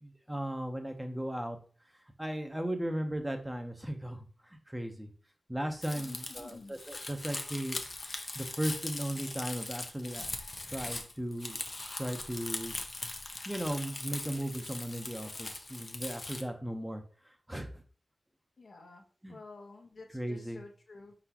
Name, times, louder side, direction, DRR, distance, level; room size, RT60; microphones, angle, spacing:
voice 1, 0.0-1.6 2.2-5.1 5.5-7.8 8.3-10.3 10.6-11.6 12.0-12.7 13.5-17.0 17.5-17.8 19.2-19.4 20.1-20.6, right 1 dB, 10° right, 5 dB, 0.9 m, -36 dB
Crumpling crinkling, 5.8-16.4, left 2 dB, 45° left, 0.7 m, -40 dB
voice 2, 5.9-6.8 18.6-19.0 19.3-21.1, left 3 dB, 70° left, 2 dB, 1.0 m, -50 dB
4.5 x 4.0 x 2.9 m, 0.40 s
cardioid pair, 50°, 0 cm